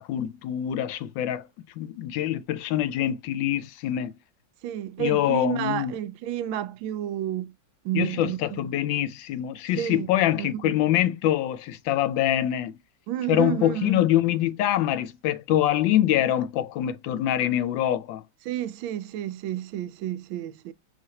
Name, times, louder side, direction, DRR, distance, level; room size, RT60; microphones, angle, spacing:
voice 1, 0.0-1.5 1.8-4.1 5.0-5.9 7.9-12.7 13.3-18.2, left 12 dB, 80° left, 1.3 m, -25 dB
voice 2, 4.6-7.5 7.8-8.6 9.8-10.1 10.4-10.7 13.1-14.0 18.4-20.7, right 12 dB, 90° right, 1.4 m, -30 dB
5.0 x 3.3 x 2.7 m
omnidirectional pair, 2.1 m